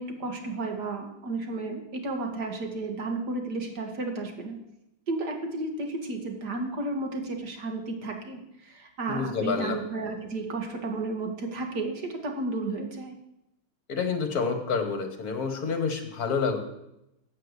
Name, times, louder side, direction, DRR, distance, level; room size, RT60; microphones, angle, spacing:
voice 1, 0.0-4.6 5.1-13.2, right 2 dB, 55° right, 3 dB, 2.2 m, -33 dB
voice 2, 9.1-9.8 13.9-16.6, left 5 dB, 50° left, 6 dB, 2.0 m, -28 dB
12.5 x 6.5 x 8.2 m, 0.86 s
omnidirectional pair, 2.2 m